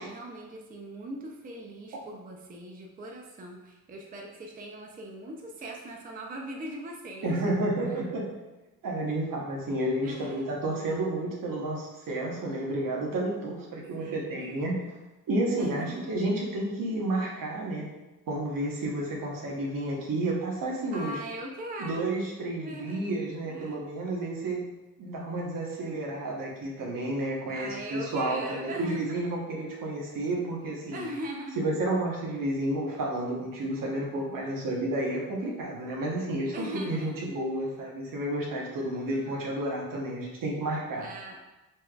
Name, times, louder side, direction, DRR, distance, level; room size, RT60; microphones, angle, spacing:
voice 1, 0.0-7.6 7.8-8.0 10.0-10.7 14.0-14.6 15.6-16.1 20.9-22.1 22.6-23.2 23.5-23.8 27.5-29.3 30.9-31.6 32.0-32.1 36.5-37.1 37.4-37.8 38.9-39.6 41.0-41.4, right 1 dB, 25° right, 1 dB, 0.5 m, -40 dB
voice 2, 7.2-8.2 8.8-14.8 15.3-17.9 18.3-21.2 21.8-24.6 25.0-31.0 31.6-41.1, right 1 dB, 75° right, -2 dB, 1.0 m, -31 dB
4.2 x 3.2 x 2.3 m, 1.0 s
cardioid pair, 95°, 34 cm